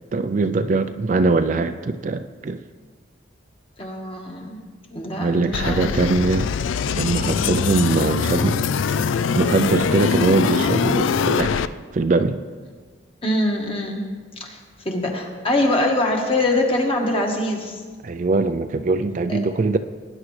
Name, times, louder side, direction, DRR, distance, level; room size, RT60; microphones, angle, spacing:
voice 1, 0.1-2.6 5.2-6.5 6.9-8.6 9.3-12.4 18.0-19.8, right 3 dB, 40° right, 10 dB, 0.3 m, -22 dB
voice 2, 3.8-4.6 4.9-5.9 7.2-7.5 13.2-14.0 14.4-14.6 14.8-17.8 19.3-19.4, left 1 dB, 30° left, 1 dB, 1.4 m, -23 dB
sound 1, 5.5-11.7, left 6 dB, 80° left, 0.4 m, -22 dB
19.0 x 9.8 x 3.2 m, 1.5 s
head